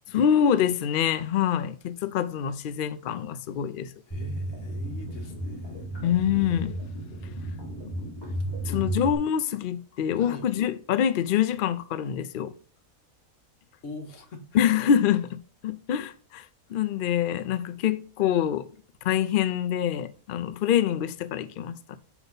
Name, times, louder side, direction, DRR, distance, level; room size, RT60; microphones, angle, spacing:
voice 1, 0.1-3.9 6.0-6.8 8.0-8.1 8.7-12.5 14.5-18.7 19.0-22.0, left 9 dB, 90° left, 0.4 m, -25 dB
voice 2, 4.1-6.0 8.2-9.3 10.2-10.5 13.8-14.7, left 3 dB, 60° left, 1.5 m, -43 dB
sound 1, 4.1-9.2, right 1 dB, 15° left, 2.3 m, -33 dB
8.0 x 3.0 x 5.2 m
omnidirectional pair, 1.5 m